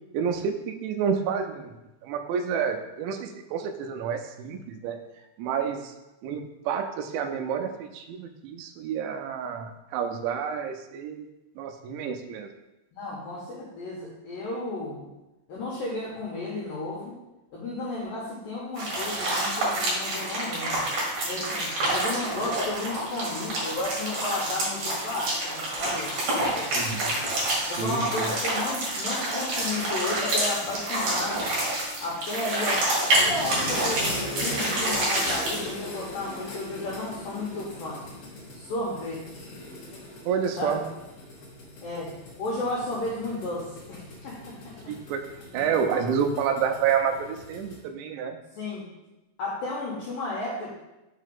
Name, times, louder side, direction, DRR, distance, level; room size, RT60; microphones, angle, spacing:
voice 1, 0.1-1.7 2.0-5.0 5.4-5.9 6.2-11.3 11.6-12.5 26.7-27.2 27.6-28.3 40.3-40.9 44.9-48.4, right 7 dB, 85° right, 7 dB, 2.8 m, -29 dB
voice 2, 12.9-15.1 15.5-17.1 17.5-20.9 21.3-26.9 27.7-31.5 32.0-38.0 38.5-39.4 40.6-40.8 41.8-42.1 42.4-44.9 45.5-45.6 45.9-46.0 48.6-48.8 49.4-50.7, left 2 dB, 75° left, -5 dB, 2.1 m, -33 dB
sound 1, 18.8-35.7, right 1 dB, 55° right, 2.8 m, -28 dB
sound 2, 33.1-47.8, left 1 dB, 60° left, 1.8 m, -40 dB
6.5 x 3.8 x 5.1 m, 0.98 s
omnidirectional pair, 5.4 m